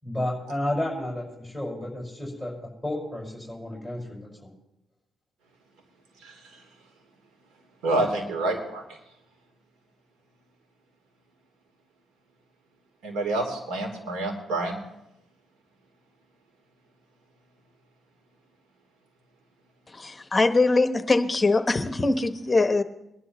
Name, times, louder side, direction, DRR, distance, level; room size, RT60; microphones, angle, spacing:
voice 1, 0.0-2.5 2.8-4.5, left 1 dB, 10° right, -3 dB, 5.3 m, -32 dB
voice 2, 7.8-8.8 13.0-14.8, right 2 dB, 90° right, 1 dB, 3.3 m, -27 dB
voice 3, 19.9-22.8, left 3 dB, 20° left, 9 dB, 1.0 m, -22 dB
22.5 x 11.0 x 3.0 m, 0.86 s
cardioid pair, 90°, 0 cm